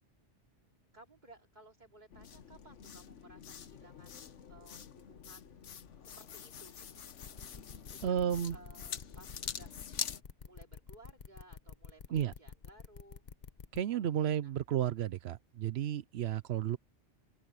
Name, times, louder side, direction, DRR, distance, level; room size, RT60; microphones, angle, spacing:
voice 1, 0.9-4.2 4.5-5.7 6.0-7.1 7.9-8.1 8.5-9.8 10.4-13.2 14.3-14.5, right 2 dB, 40° right, 3.2 m, -59 dB
sound 1, 2.1-10.2, left 7 dB, 80° left, 1.4 m, -45 dB
sound 2, 7.1-13.8, left 6 dB, 40° left, 0.9 m, -49 dB
voice 2, 8.0-8.6 12.1-12.3 13.7-16.8, right 10 dB, 65° right, 0.8 m, -32 dB
open air
omnidirectional pair, 1.2 m